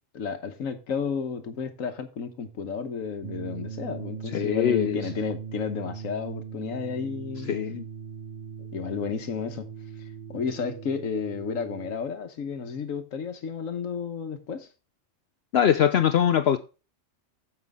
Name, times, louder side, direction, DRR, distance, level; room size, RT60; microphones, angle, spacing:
voice 1, 0.1-7.5 8.6-9.7 10.3-14.7, left 6 dB, 80° left, 1.4 m, -32 dB
sound 1, 3.2-12.0, right 7 dB, 60° right, 0.5 m, -39 dB
voice 2, 4.3-5.0 7.5-7.8 15.5-16.6, left 9 dB, 60° left, 0.7 m, -22 dB
9.3 x 6.8 x 3.5 m
omnidirectional pair, 1.4 m